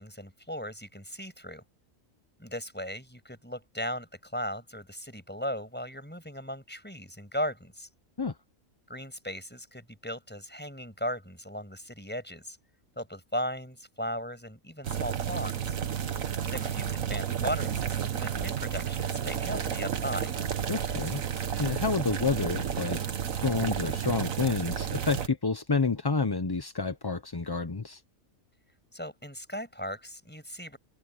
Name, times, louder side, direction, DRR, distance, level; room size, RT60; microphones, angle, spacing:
voice 1, 0.0-1.6 2.4-7.9 8.9-12.6 13.0-15.8 16.4-20.3 28.9-30.8, equal, 5° left, 6.3 m, -37 dB
sound 1, 14.8-25.3, right 8 dB, 75° right, 1.7 m, -31 dB
voice 2, 20.7-21.2 21.6-23.0 23.4-28.0, left 4 dB, 25° left, 0.5 m, -29 dB
open air
omnidirectional pair, 1.4 m